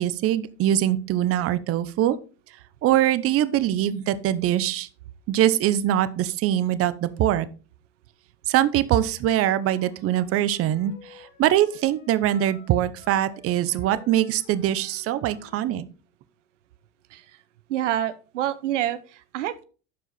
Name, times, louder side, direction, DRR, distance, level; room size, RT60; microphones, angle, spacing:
voice 1, 0.0-2.2 2.8-4.9 5.3-7.5 8.5-15.8, right 12 dB, 40° right, 15 dB, 0.8 m, -23 dB
Wind instrument woodwind instrument, 9.5-15.8, left 6 dB, 65° left, 3.8 m, -52 dB
voice 2, 17.7-19.6, right 12 dB, 90° right, 14 dB, 0.9 m, -27 dB
12.0 x 4.9 x 4.1 m, 0.36 s
supercardioid pair, 110°, 35 cm